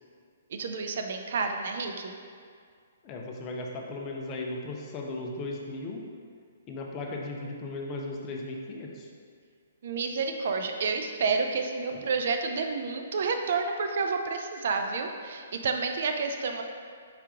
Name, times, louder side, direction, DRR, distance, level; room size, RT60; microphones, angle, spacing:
voice 1, 0.5-2.1 9.8-16.6, right 4 dB, 60° right, 5 dB, 0.4 m, -30 dB
voice 2, 3.0-6.0 6.7-9.1 11.9-12.0, left 2 dB, 25° left, 0 dB, 0.6 m, -36 dB
4.9 x 2.9 x 3.5 m, 2.1 s
hypercardioid pair, 145°, 0 cm